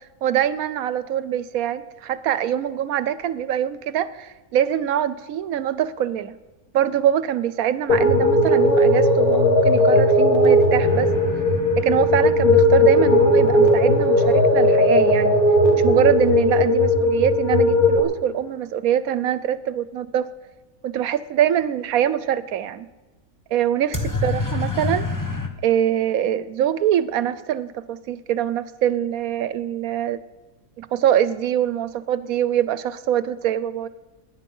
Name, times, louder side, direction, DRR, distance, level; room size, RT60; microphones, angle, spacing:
voice 1, 0.2-6.3 6.7-11.1 11.8-15.4 15.8-20.3 20.8-22.9 23.5-25.1 25.6-30.2 30.8-33.9, right 10 dB, 75° right, 16 dB, 1.0 m, -23 dB
sound 1, 7.9-18.0, left 1 dB, 75° left, 2.2 m, -17 dB
sound 2, 10.8-16.6 23.9-25.5, left 3 dB, 15° left, 1.0 m, -31 dB
17.5 x 10.5 x 5.4 m, 1.2 s
omnidirectional pair, 1.6 m